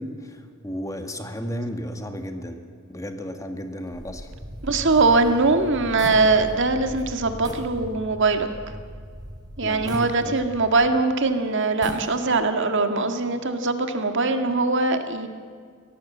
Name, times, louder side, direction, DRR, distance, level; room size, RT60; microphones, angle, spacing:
voice 1, 0.0-2.6 2.9-4.3 9.6-10.4, equal, 15° left, 6 dB, 1.7 m, -33 dB
sound 1, 3.9-6.7 7.0-7.1 7.4-7.8 8.2-8.3 9.9-10.9 11.6-12.5, right 1 dB, 20° right, 3.0 m, -40 dB
sound 2, 4.3-10.8, equal, 40° right, 4.7 m, -39 dB
voice 2, 4.6-8.5 9.6-15.3, right 3 dB, 60° right, 7 dB, 1.8 m, -21 dB
24.0 x 18.0 x 7.3 m, 2.1 s
head